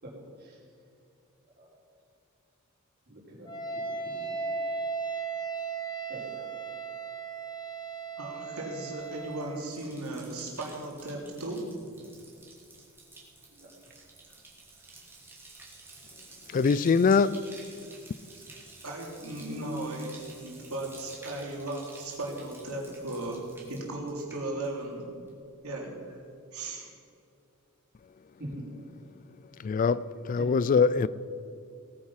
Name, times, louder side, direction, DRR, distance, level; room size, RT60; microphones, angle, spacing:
voice 1, 3.1-4.5 5.7-5.8 6.1-6.5 13.5-13.7 28.4-28.6 30.4-30.5, equal, 50° right, 4.1 m, -45 dB
Wind instrument woodwind instrument, 3.5-9.6, right 4 dB, 20° left, 1.5 m, -36 dB
voice 2, 8.2-12.0 18.8-25.0 25.6-26.2 26.5-26.9, right 1 dB, 85° right, 3.2 m, -36 dB
Bathtub (filling or washing), 8.9-25.0 25.3-25.8, right 3 dB, 10° right, 2.7 m, -52 dB
voice 3, 16.5-17.4 29.6-31.1, left 5 dB, 40° left, 0.3 m, -23 dB
18.0 x 9.4 x 5.7 m
head